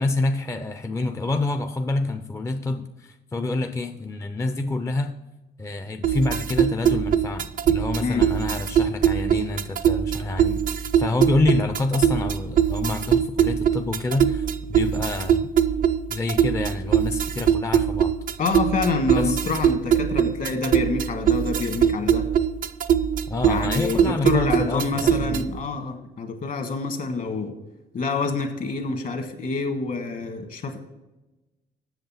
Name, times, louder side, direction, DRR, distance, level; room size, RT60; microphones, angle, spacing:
voice 1, 0.0-5.1 5.6-15.5 16.1-18.1 19.1-19.4 23.3-25.5, left 2 dB, 15° left, 7 dB, 0.4 m, -27 dB
sound 1, 6.0-25.6, right 9 dB, 50° right, 0.5 m, -22 dB
voice 2, 18.4-22.3 23.4-27.5 27.9-30.9, left 4 dB, 55° left, 5 dB, 1.5 m, -27 dB
8.0 x 6.8 x 5.6 m, 1.0 s
cardioid pair, 125°, 17 cm